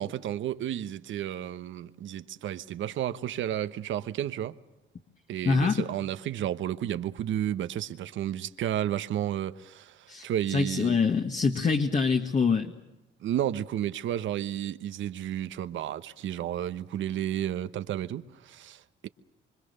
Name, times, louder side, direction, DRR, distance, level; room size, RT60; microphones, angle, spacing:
voice 1, 0.0-4.5 5.3-11.0 13.2-19.1, right 11 dB, 75° right, 1.1 m, -32 dB
voice 2, 5.5-5.9 10.1-12.7, left 5 dB, 40° left, 1.9 m, -25 dB
25.5 x 25.0 x 6.8 m
cardioid pair, 90°, 20 cm